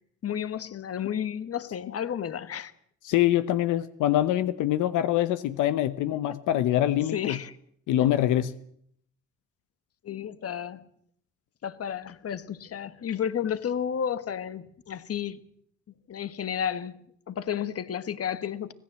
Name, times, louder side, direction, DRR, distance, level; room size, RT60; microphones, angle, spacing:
voice 1, 0.2-2.7 7.1-7.5 10.0-10.8 11.6-15.4 16.1-17.0 17.3-18.7, left 8 dB, 50° left, 1.4 m, -32 dB
voice 2, 3.0-7.4 7.9-8.5, left 13 dB, 90° left, 1.0 m, -24 dB
25.5 x 17.0 x 7.6 m
cardioid pair, 90°, 30 cm